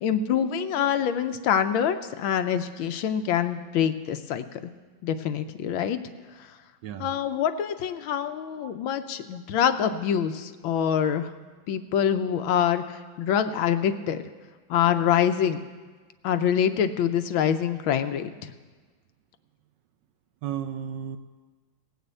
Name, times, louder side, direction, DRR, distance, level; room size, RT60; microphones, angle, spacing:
voice 1, 0.0-4.7 5.0-6.0 7.0-11.3 11.7-14.2 14.7-15.6 16.2-18.5, left 8 dB, 75° left, 9 dB, 1.4 m, -25 dB
voice 2, 6.8-7.2 8.6-8.8 20.4-21.2, right 9 dB, 75° right, 9 dB, 1.1 m, -34 dB
18.0 x 6.7 x 8.2 m, 1.4 s
omnidirectional pair, 2.3 m